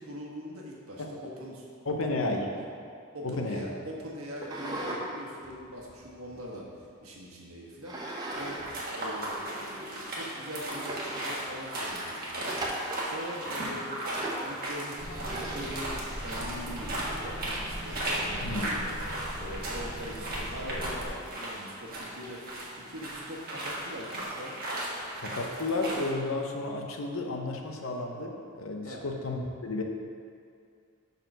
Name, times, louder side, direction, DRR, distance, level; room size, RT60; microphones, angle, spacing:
voice 1, 0.0-2.7 3.1-6.7 7.0-8.0 8.3-8.6 8.9-12.6 12.8-15.0 15.3-18.9 19.4-22.4 22.7-24.6 28.8-29.1, equal, 75° right, -3 dB, 1.3 m, -42 dB
voice 2, 1.9-2.5 3.2-3.7 18.4-18.8 25.2-29.8, left 2 dB, 65° left, 2 dB, 0.8 m, -32 dB
sound 1, 4.4-5.0 5.4-6.8 7.8-8.6 8.9-9.0 9.7-9.8 10.2-10.3 10.7-11.4 12.5-13.1 14.1-14.5 15.2-15.8, right 1 dB, 20° right, 0.8 m, -37 dB
sound 2, 8.3-26.1, right 1 dB, 45° right, 1.4 m, -36 dB
sound 3, 15.0-21.1, equal, 40° left, 1.2 m, -40 dB
6.6 x 4.2 x 6.1 m, 2.3 s
head